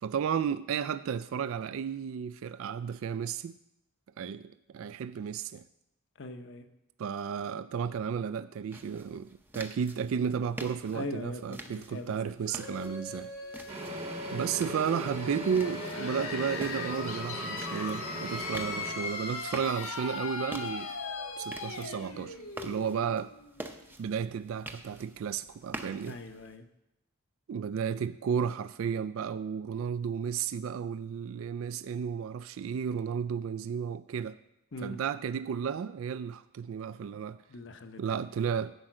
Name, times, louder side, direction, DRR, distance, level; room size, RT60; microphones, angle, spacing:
voice 1, 0.0-3.6 4.2-5.6 7.0-13.3 14.3-20.9 21.4-23.3 24.0-26.2 27.5-34.4 34.8-37.4 38.0-38.7, right 7 dB, 65° right, 14 dB, 0.3 m, -33 dB
voice 2, 6.2-6.7 10.9-12.3 26.1-26.7 34.7-35.0 37.5-38.2, left 2 dB, 55° left, 8 dB, 0.8 m, -41 dB
sound 1, 8.7-26.6, right 1 dB, 10° right, 0.6 m, -48 dB
sound 2, 12.5-24.0, left 4 dB, 75° left, 1.3 m, -39 dB
sound 3, 13.7-18.9, right 2 dB, 30° right, 1.0 m, -40 dB
10.5 x 4.9 x 7.5 m, 0.87 s
head